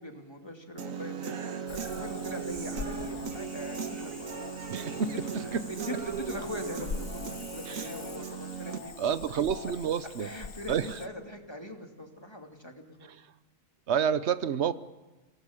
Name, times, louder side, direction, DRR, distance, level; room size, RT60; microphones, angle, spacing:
voice 1, 0.0-4.3 5.7-8.9 9.3-9.4 10.2-13.1, left 1 dB, 20° left, 3 dB, 2.7 m, -42 dB
Human voice / Guitar, 0.8-8.8, right 6 dB, 80° right, 1.8 m, -37 dB
Cricket / Frog, 1.7-11.1, left 4 dB, 60° left, 1.5 m, -44 dB
voice 2, 4.7-5.6 7.7-7.9 9.0-10.3 10.7-11.0 13.0-13.3 13.9-14.7, right 7 dB, 60° right, 14 dB, 1.1 m, -30 dB
27.0 x 18.5 x 7.3 m, 1.2 s
omnidirectional pair, 1.4 m